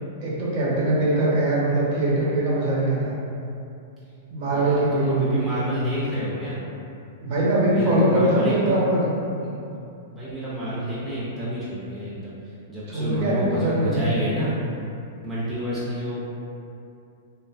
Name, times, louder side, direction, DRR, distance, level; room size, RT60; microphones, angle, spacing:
voice 1, 0.2-3.1 4.3-5.7 7.2-9.1 12.9-14.2, right 1 dB, 45° right, -6 dB, 0.7 m, -22 dB
voice 2, 4.5-6.6 7.7-8.8 9.4-9.5 10.1-12.4 12.7-14.6 15.2-16.2, right 1 dB, ahead, -11 dB, 0.4 m, -29 dB
2.6 x 2.4 x 2.3 m, 2.6 s
supercardioid pair, 155°, 0 cm